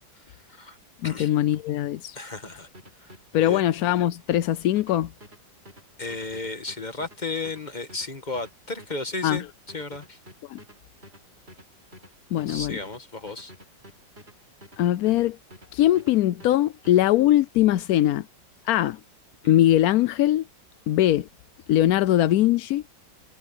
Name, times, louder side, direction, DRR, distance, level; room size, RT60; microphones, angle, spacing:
voice 1, 0.1-0.8 1.0-1.3 2.1-2.7 3.0-3.6 6.0-10.2 12.5-13.5 19.4-19.6, left 3 dB, 25° left, 1.3 m, -34 dB
voice 2, 1.0-2.2 3.3-5.1 9.2-9.4 10.5-10.6 12.3-12.8 14.8-15.4 15.7-18.3 18.7-19.0 19.5-20.4 20.9-21.3 21.7-22.8, left 13 dB, 75° left, 0.8 m, -21 dB
sound 1, 2.7-15.7 16.0-17.1, equal, 30° right, 5.3 m, -49 dB
omnidirectional pair, 2.1 m